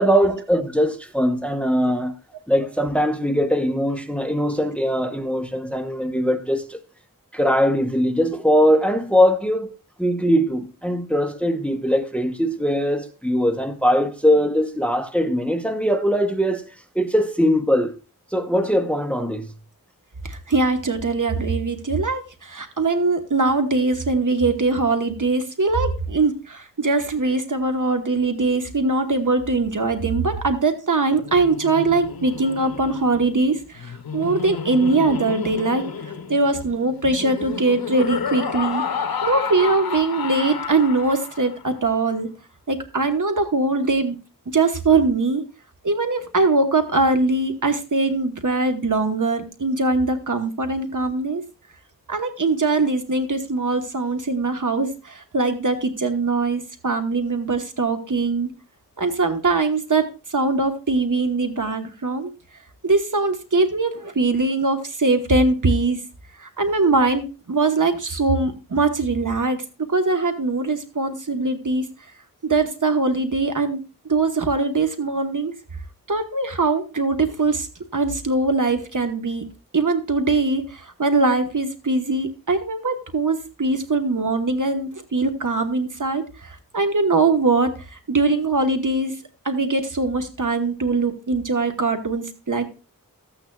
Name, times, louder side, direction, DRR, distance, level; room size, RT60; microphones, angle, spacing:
voice 1, 0.0-2.1 2.5-6.8 7.3-17.9 18.3-19.5, equal, 5° left, 0.9 m, -21 dB
voice 2, 20.2-35.8 36.3-38.8 39.2-42.3 42.7-44.2 44.5-45.4 45.8-51.4 52.1-58.5 59.0-62.3 62.8-66.0 66.4-69.6 69.9-71.9 72.4-75.5 76.1-77.7 77.9-79.4 79.7-89.2 89.4-92.7, right 3 dB, 60° right, 1.2 m, -22 dB
Laughter, 31.1-41.6, left 6 dB, 90° left, 0.8 m, -31 dB
14.0 x 8.8 x 2.3 m
wide cardioid pair, 55°, 35 cm